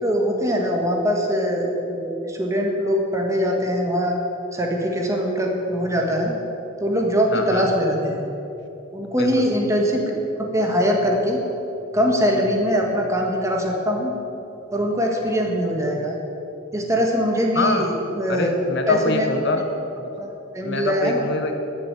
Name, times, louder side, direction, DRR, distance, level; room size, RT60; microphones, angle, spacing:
voice 1, 0.0-4.2 4.5-6.3 6.8-8.3 8.9-10.0 10.4-11.4 11.9-14.2 14.7-16.2 16.7-18.5 18.9-19.3 20.2-21.2, equal, 15° right, 0 dB, 1.7 m, -22 dB
voice 2, 7.3-7.7 9.1-9.4 17.5-17.9 18.3-19.6 20.0-20.1 20.6-21.5, left 2 dB, 60° left, 5 dB, 1.4 m, -24 dB
13.0 x 7.4 x 8.9 m, 2.9 s
head